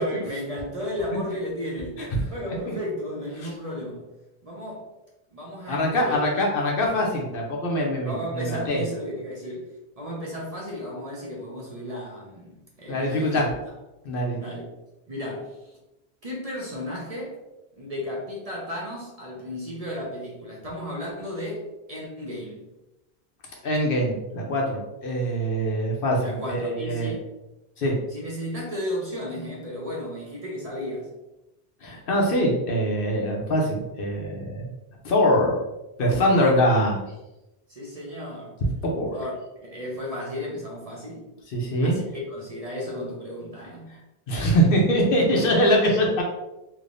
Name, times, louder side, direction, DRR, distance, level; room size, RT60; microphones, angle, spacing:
voice 1, 0.0-2.0 2.3-4.1 4.4-4.9 5.3-6.2 8.0-9.7 10.0-13.4 14.3-14.6 15.1-15.6 16.2-17.4 17.8-22.6 26.2-27.2 28.1-31.1 36.3-36.9 37.7-38.6 39.1-39.3 39.7-41.3 41.8-42.0 42.3-43.9 45.2-45.5, equal, 40° right, -3 dB, 0.8 m, -34 dB
voice 2, 5.7-8.8 12.9-13.5 14.0-14.4 23.6-27.1 27.8-28.0 31.8-34.7 35.0-35.6 36.0-37.0 38.8-39.2 41.5-42.0 44.3-46.2, equal, 65° left, -1 dB, 0.9 m, -23 dB
3.3 x 3.0 x 2.6 m, 0.96 s
omnidirectional pair, 1.0 m